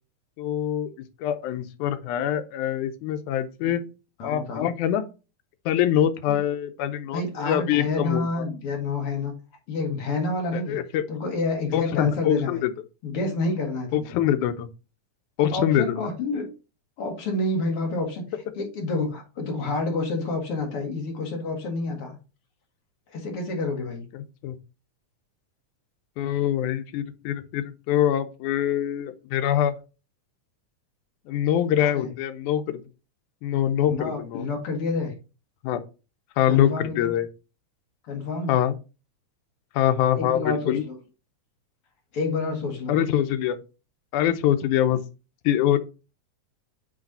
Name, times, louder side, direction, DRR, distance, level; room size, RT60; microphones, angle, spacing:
voice 1, 0.4-3.9 4.2-5.0 5.7-8.3 10.5-11.0 11.7-12.7 13.9-14.7 15.4-16.0 24.4-24.6 26.2-29.8 31.3-32.8 33.4-34.5 35.6-35.8 36.4-37.3 38.5-38.7 39.8-40.8 42.9-43.6 44.1-45.0 45.5-45.8, left 10 dB, 85° left, 2.2 m, -24 dB
voice 2, 4.2-4.7 6.3-6.4 7.1-9.3 9.7-10.8 11.1-12.7 13.0-14.2 15.5-16.5 17.0-18.2 18.6-22.2 23.1-24.0 31.8-32.1 33.9-35.2 36.5-37.1 38.1-38.5 40.2-41.0 42.1-42.9, left 3 dB, 55° left, 2.2 m, -28 dB
7.7 x 3.2 x 4.1 m
omnidirectional pair, 3.4 m